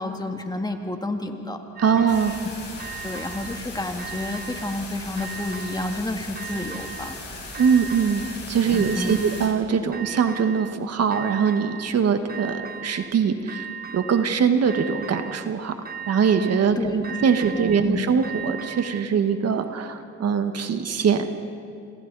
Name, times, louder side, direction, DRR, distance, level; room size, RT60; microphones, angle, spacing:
voice 1, 0.0-1.6 1.9-2.1 3.0-7.1 8.7-9.3 16.8-17.2 17.5-18.0, left 2 dB, 15° left, 4 dB, 2.0 m, -30 dB
sound 1, 1.8-2.5 2.8-3.6 4.0-4.8 5.2-6.0 6.4-7.2 7.5-8.4 8.7-9.6 9.9-10.8 11.1-12.0 12.3-13.1 13.5-14.3 14.7-15.5 15.8-16.7 17.0-19.1, right 8 dB, 30° right, 1.2 m, -38 dB
voice 2, 1.8-2.3 7.6-15.7 16.1-21.3, right 6 dB, 55° right, 7 dB, 1.5 m, -22 dB
sound 2, 2.1-9.5, left 3 dB, 35° left, 7.0 m, -38 dB
29.0 x 26.0 x 4.1 m, 2.4 s
cardioid pair, 90°, 30 cm